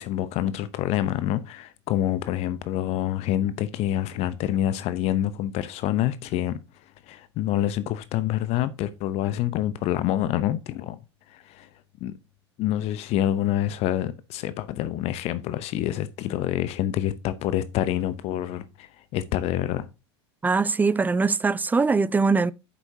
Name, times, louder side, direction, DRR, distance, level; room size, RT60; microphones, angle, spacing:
voice 1, 0.0-6.6 7.1-11.0 11.3-11.7 12.0-12.1 12.6-19.9, left 12 dB, 45° left, 0.7 m, -27 dB
voice 2, 20.4-22.5, right 4 dB, 10° right, 0.4 m, -22 dB
9.1 x 7.1 x 2.7 m
hypercardioid pair, 85°, 14 cm